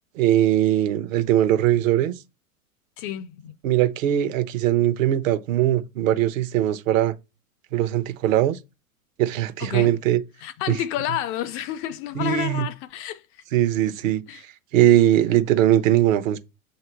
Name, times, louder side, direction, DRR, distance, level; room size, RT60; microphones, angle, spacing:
voice 1, 0.2-2.1 3.6-7.1 7.7-8.6 9.2-10.2 10.7-10.8 12.1-12.7 13.5-14.2 14.7-16.4, right 12 dB, 65° right, 0.9 m, -20 dB
voice 2, 3.0-3.6 9.6-10.0 10.4-13.4 14.3-14.4, left 11 dB, 35° left, 0.4 m, -30 dB
7.6 x 2.8 x 4.4 m
hypercardioid pair, 100°, 42 cm